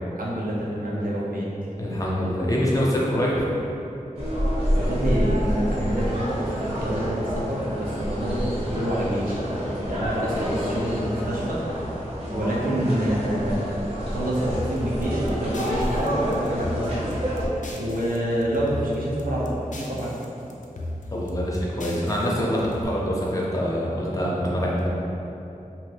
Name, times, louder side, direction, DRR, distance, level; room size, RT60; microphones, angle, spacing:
voice 1, 0.1-1.5 4.7-11.6 12.3-17.3 17.8-20.2, right 1 dB, 75° right, -6 dB, 0.7 m, -27 dB
voice 2, 1.8-3.4 12.3-12.4 21.1-24.9, equal, 25° left, -5 dB, 0.7 m, -25 dB
sound 1, 4.1-17.5, equal, 45° right, 0.9 m, -28 dB
sound 2, 14.5-18.2 18.4-20.3 20.5-22.8, left 1 dB, 60° left, 0.4 m, -35 dB
2.8 x 2.6 x 3.2 m, 2.8 s
wide cardioid pair, 55°, 14 cm